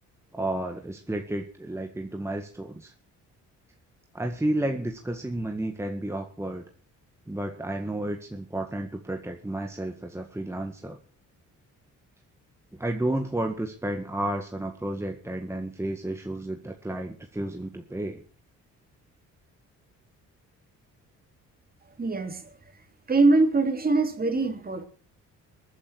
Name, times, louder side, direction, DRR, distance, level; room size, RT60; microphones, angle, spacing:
voice 1, 0.3-2.9 4.1-6.6 7.3-11.0 12.7-18.2, right 1 dB, 10° right, 3 dB, 1.8 m, -32 dB
voice 2, 22.0-22.5 23.1-24.8, right 3 dB, 30° right, 6 dB, 3.4 m, -23 dB
21.5 x 10.0 x 4.7 m, 0.39 s
cardioid pair, 90°, 30 cm